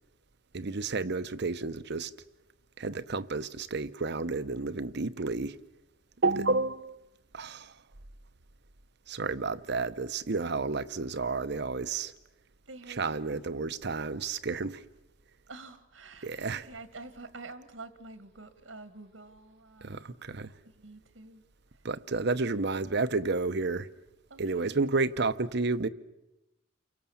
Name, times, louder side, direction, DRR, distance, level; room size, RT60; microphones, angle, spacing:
voice 1, 0.5-2.1 2.8-5.6 6.2-7.0 7.3-7.8 9.1-12.1 13.0-14.8 16.2-16.6 19.8-20.5 21.8-23.9 24.4-25.9, right 3 dB, 60° right, 0.9 m, -31 dB
voice 2, 12.7-13.4 15.5-20.0 20.6-21.4 21.7-21.9 24.3-25.0, right 3 dB, 85° right, 1.8 m, -48 dB
29.5 x 24.0 x 7.2 m
head